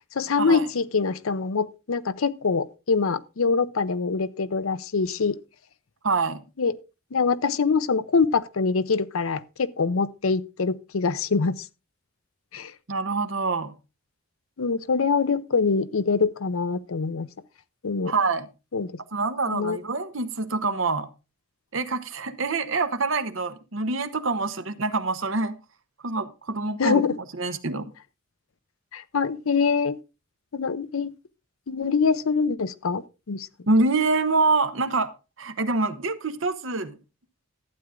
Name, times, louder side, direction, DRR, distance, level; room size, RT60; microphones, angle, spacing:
voice 1, 0.1-5.4 6.6-6.7 7.1-11.6 12.5-12.7 14.6-17.3 17.8-18.1 18.7-18.9 19.5-19.8 26.8-27.2 28.9-30.0 30.5-31.1 31.7-33.5, left 5 dB, 80° left, 0.6 m, -24 dB
voice 2, 6.0-6.4 12.9-13.7 18.1-18.5 19.1-21.1 21.7-25.5 26.0-27.0 27.4-27.9 33.7-35.1 35.4-37.0, right 3 dB, 70° right, 1.1 m, -25 dB
12.0 x 8.8 x 3.7 m
head